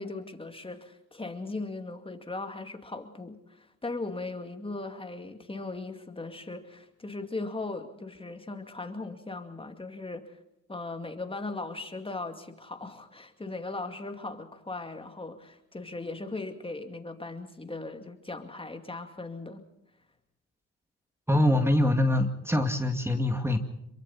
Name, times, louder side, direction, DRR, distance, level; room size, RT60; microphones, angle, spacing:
voice 1, 0.0-10.3 10.7-19.6, left 3 dB, 20° left, 6 dB, 2.4 m, -38 dB
voice 2, 21.3-23.6, left 1 dB, 10° right, 6 dB, 2.2 m, -24 dB
27.5 x 23.0 x 4.3 m, 0.83 s
cardioid pair, 90°, 30 cm